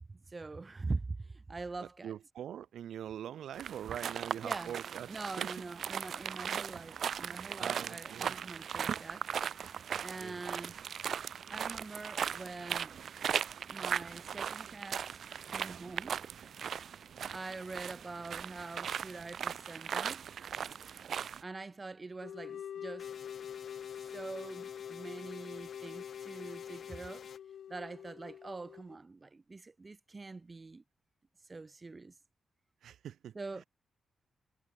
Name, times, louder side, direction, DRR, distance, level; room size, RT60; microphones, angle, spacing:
voice 1, 0.1-2.1 4.4-4.7 5.1-9.3 10.0-10.8 11.5-12.9 13.6-15.1 15.5-16.2 17.3-20.2 21.4-23.1 24.0-27.3 27.7-30.8 31.4-32.1 33.3-33.6, right 3 dB, 30° right, 2.2 m, -44 dB
voice 2, 1.8-5.5 7.6-8.4 9.9-10.8 32.8-33.6, right 10 dB, 85° right, 4.4 m, -44 dB
sound 1, 3.5-21.4, right 8 dB, 65° right, 2.2 m, -38 dB
sound 2, 22.2-29.0, left 9 dB, 80° left, 6.6 m, -45 dB
sound 3, 23.0-27.4, left 6 dB, 60° left, 6.0 m, -53 dB
cardioid pair, 95°, 0 cm